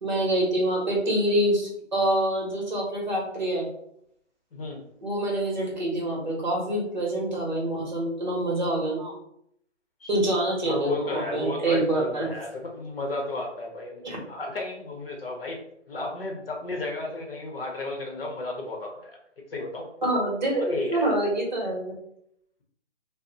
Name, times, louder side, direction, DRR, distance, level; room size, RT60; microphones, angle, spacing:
voice 1, 0.0-3.7 5.0-9.1 10.1-12.3 14.0-14.2 20.0-21.9, right 1 dB, 40° right, -2 dB, 0.9 m, -26 dB
voice 2, 4.5-4.8 10.0-10.1 10.6-19.2 19.5-19.9 20.6-21.1, left 2 dB, 50° left, 1 dB, 0.8 m, -33 dB
2.7 x 2.1 x 3.8 m, 0.72 s
hypercardioid pair, 165°, 36 cm